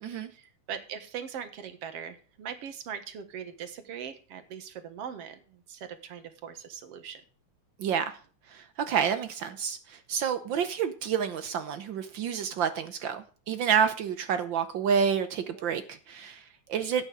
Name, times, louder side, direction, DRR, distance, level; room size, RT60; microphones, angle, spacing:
voice 1, 0.3-7.2 15.6-15.7, right 8 dB, 60° right, 11 dB, 2.2 m, -41 dB
voice 2, 7.8-8.2 8.5-17.1, right 7 dB, 90° right, 10 dB, 1.0 m, -29 dB
12.0 x 9.2 x 5.0 m, 0.38 s
omnidirectional pair, 3.4 m